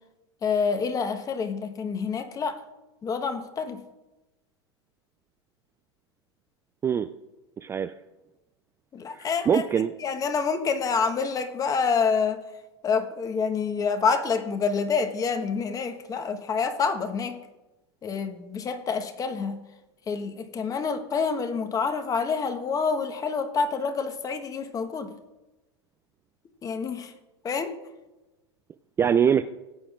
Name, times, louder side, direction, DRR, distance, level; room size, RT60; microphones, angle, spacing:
voice 1, 0.4-2.6 3.0-3.8 8.9-9.6 10.0-12.4 12.8-17.4 18.0-19.6 20.1-25.1 26.6-27.1 27.4-27.8, left 5 dB, 25° left, 7 dB, 1.2 m, -27 dB
voice 2, 7.6-7.9 9.1-9.9 29.0-29.4, right 8 dB, 15° right, 11 dB, 0.3 m, -23 dB
18.0 x 8.6 x 2.4 m, 1.0 s
hypercardioid pair, 95°, 14 cm